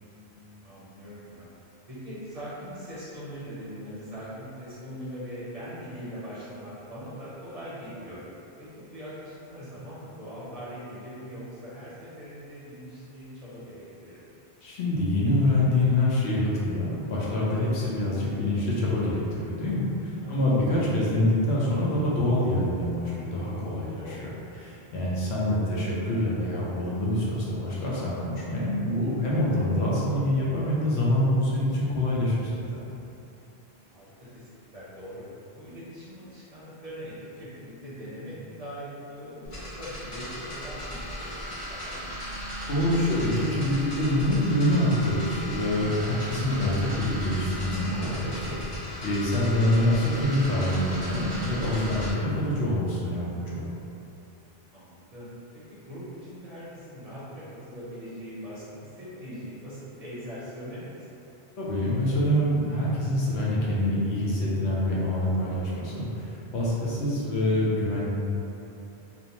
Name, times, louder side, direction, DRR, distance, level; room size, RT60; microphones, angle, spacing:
voice 1, 0.0-1.5 1.9-8.2 8.6-14.3 20.2-20.4 24.0-24.4 33.3-35.2 35.5-42.1 54.7-61.2, equal, 40° right, -10 dB, 0.6 m, -41 dB
voice 2, 14.6-24.3 24.6-32.6 42.7-53.6 61.6-68.0, left 1 dB, 90° left, -6 dB, 0.9 m, -26 dB
sound 1, 39.4-52.1, equal, 50° left, 1.0 m, -36 dB
2.7 x 2.1 x 2.8 m, 2.8 s
omnidirectional pair, 1.1 m